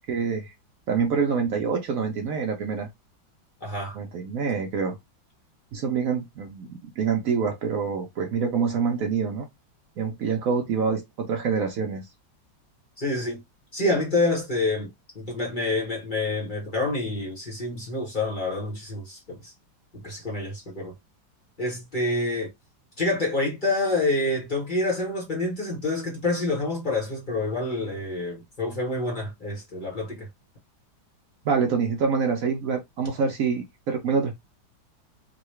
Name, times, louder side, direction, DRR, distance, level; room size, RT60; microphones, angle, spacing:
voice 1, 0.1-0.5 0.9-2.9 3.9-5.0 5.7-9.5 10.0-12.0 31.4-34.4, right 5 dB, 85° right, 0.7 m, -26 dB
voice 2, 3.6-4.0 13.0-13.4 13.7-19.5 19.9-20.9 21.6-22.5 23.0-30.3, left 2 dB, 35° left, 0.8 m, -27 dB
3.7 x 2.2 x 3.1 m
omnidirectional pair, 2.2 m